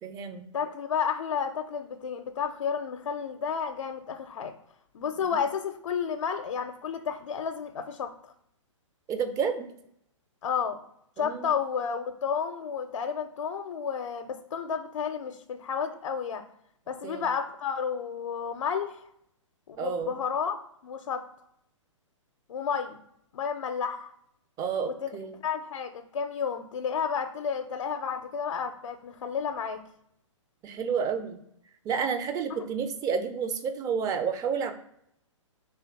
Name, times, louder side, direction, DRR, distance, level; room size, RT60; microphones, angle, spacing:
voice 1, 0.0-0.5 9.1-9.7 11.2-11.5 17.0-17.2 19.8-20.1 24.6-25.4 30.6-31.4 31.8-34.7, right 6 dB, 20° right, 8 dB, 0.6 m, -30 dB
voice 2, 0.5-4.5 4.9-8.3 10.4-10.8 11.2-16.4 16.9-19.0 19.7-21.2 22.5-23.0 23.3-24.1 24.8-25.2 25.4-29.8 32.5-32.6, left 7 dB, 70° left, 7 dB, 0.6 m, -31 dB
3.4 x 3.4 x 4.5 m, 0.74 s
hypercardioid pair, 130°, 17 cm